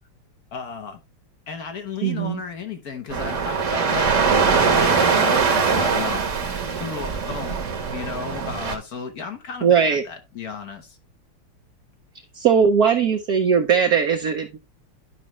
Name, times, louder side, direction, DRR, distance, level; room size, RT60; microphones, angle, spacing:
voice 1, 0.5-1.0 1.5-11.0, left 6 dB, 55° left, 1.2 m, -34 dB
voice 2, 2.0-2.4 9.6-10.0 12.4-14.6, right 7 dB, 65° right, 1.0 m, -19 dB
sound 1, 3.1-8.8, right 5 dB, 45° right, 1.2 m, -22 dB
11.0 x 5.2 x 3.0 m
omnidirectional pair, 2.4 m